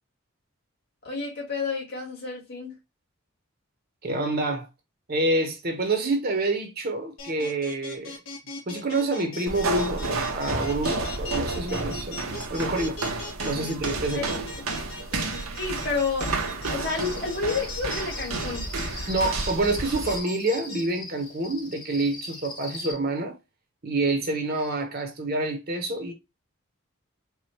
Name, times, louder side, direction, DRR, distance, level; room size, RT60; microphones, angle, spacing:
voice 1, 1.0-2.8 13.5-13.7 14.1-14.2 15.6-16.4 16.7-18.7, left 4 dB, 50° left, 2.3 m, -30 dB
voice 2, 4.0-4.7 5.1-8.2 8.7-12.2 12.5-13.0 13.4-14.4 19.1-23.4 23.8-26.1, right 2 dB, 45° right, 0.9 m, -27 dB
sound 1, 7.2-20.8, left 1 dB, 70° left, 1.7 m, -38 dB
sound 2, 9.5-20.2, right 3 dB, 85° right, 1.1 m, -31 dB
Cricket, 16.9-22.9, left 2 dB, 20° left, 0.9 m, -41 dB
4.8 x 2.5 x 4.3 m
head